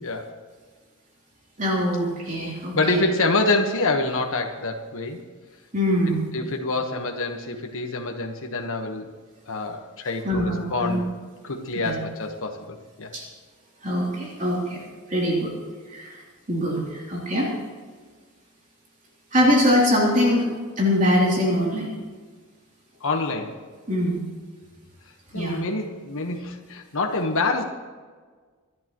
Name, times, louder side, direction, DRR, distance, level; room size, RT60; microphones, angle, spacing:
voice 1, 0.0-0.3 2.7-5.2 6.1-9.1 9.5-11.1 11.4-13.1 23.0-23.6 25.3-27.6, left 3 dB, 65° left, 3 dB, 1.3 m, -26 dB
voice 2, 1.6-3.0 5.7-6.2 10.2-11.0 11.8-12.0 13.1-13.2 13.8-14.8 15.1-15.5 15.9-16.2 16.5-17.5 19.3-20.4 20.8-21.9 23.9-24.2 25.3-25.6, equal, 35° right, -3 dB, 3.2 m, -22 dB
26.0 x 11.0 x 3.1 m, 1.5 s
head